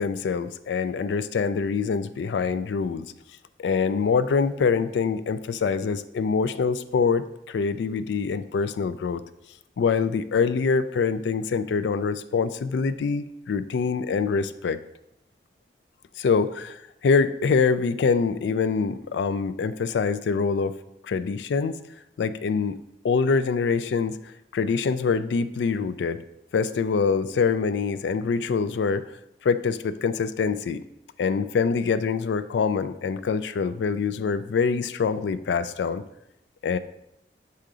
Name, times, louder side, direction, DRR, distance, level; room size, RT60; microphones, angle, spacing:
voice 1, 0.0-3.1 3.6-9.2 9.8-14.8 16.2-20.8 21.0-21.8 22.2-24.2 24.5-26.2 26.5-29.1 29.4-30.8 31.2-36.0 36.6-36.8, left 5 dB, 80° left, 13 dB, 0.3 m, -25 dB
5.6 x 3.8 x 4.8 m, 0.84 s
head